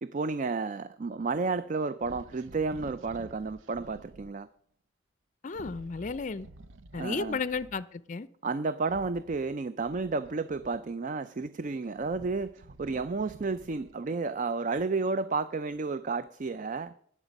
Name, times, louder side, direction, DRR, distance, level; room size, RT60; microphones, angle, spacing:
voice 1, 0.0-4.5 6.9-7.4 8.4-16.9, right 4 dB, 40° right, 13 dB, 0.4 m, -32 dB
sound 1, 2.0-4.3 5.5-7.8 8.8-11.1 11.7-14.1, right 2 dB, 80° right, 0.7 m, -51 dB
voice 2, 5.4-6.5 6.9-8.3, left 4 dB, 40° left, 17 dB, 0.5 m, -33 dB
19.0 x 7.3 x 5.2 m, 0.63 s
head